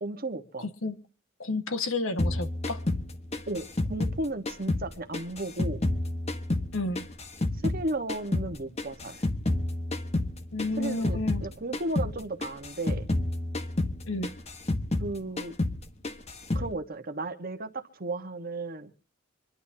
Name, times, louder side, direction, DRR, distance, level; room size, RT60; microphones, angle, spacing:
voice 1, 0.0-0.7 3.5-5.8 7.6-9.2 10.8-13.1 15.0-15.5 16.5-18.9, right 2 dB, 45° right, 1.4 m, -34 dB
voice 2, 0.6-1.0 1.4-2.8 6.7-7.1 10.5-11.5 14.1-14.3, left 2 dB, 80° left, 1.5 m, -31 dB
sound 1, 2.2-4.9 5.1-7.8 8.1-11.5 11.7-12.1 12.4-15.1 15.4-15.8 16.0-16.7, left 2 dB, 30° left, 1.4 m, -29 dB
26.0 x 11.5 x 2.8 m
head